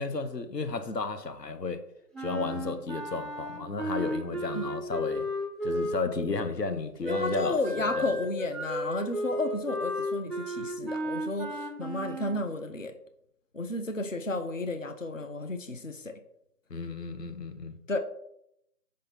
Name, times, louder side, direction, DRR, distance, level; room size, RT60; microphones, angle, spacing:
voice 1, 0.0-1.9 2.2-5.3 5.6-8.1 16.7-17.7, left 4 dB, 80° left, 0.9 m, -33 dB
Wind instrument woodwind instrument, 2.1-6.3 7.0-12.4, equal, ahead, 0.6 m, -34 dB
voice 2, 7.0-12.9 13.5-16.2 17.9-18.0, left 2 dB, 50° left, 0.6 m, -33 dB
5.0 x 3.8 x 5.7 m
figure-of-eight pair, 180°, 49 cm